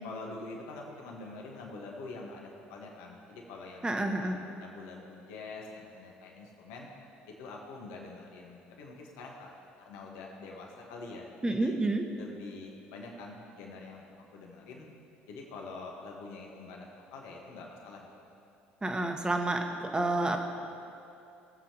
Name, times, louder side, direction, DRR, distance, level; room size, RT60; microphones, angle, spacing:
voice 1, 0.0-6.9 7.4-9.5 9.8-11.7 12.2-14.1 14.3-14.9 15.3-18.3, left 3 dB, 70° left, -1 dB, 1.5 m, -45 dB
voice 2, 3.8-4.4 11.4-12.0 18.8-20.4, right 2 dB, 15° right, 4 dB, 1.2 m, -29 dB
19.0 x 7.3 x 3.0 m, 2.7 s
hypercardioid pair, 65°, 5 cm